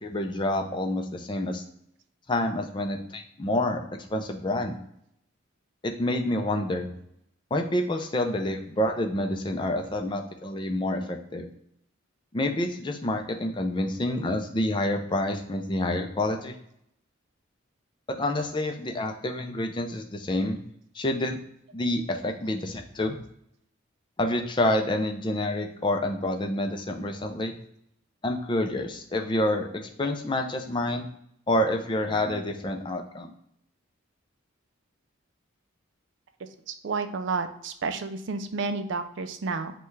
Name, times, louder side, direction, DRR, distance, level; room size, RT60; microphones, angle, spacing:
voice 1, 0.0-1.6 2.3-3.8 4.1-4.7 5.8-6.9 7.5-11.5 12.3-16.5 18.1-20.6 21.0-21.4 21.7-23.2 24.2-27.5 28.2-29.7 30.0-31.1 31.5-33.3, left 1 dB, 20° left, 4 dB, 0.4 m, -28 dB
voice 2, 36.4-39.7, right 4 dB, 60° right, 9 dB, 0.4 m, -31 dB
5.5 x 2.3 x 3.1 m, 0.73 s
head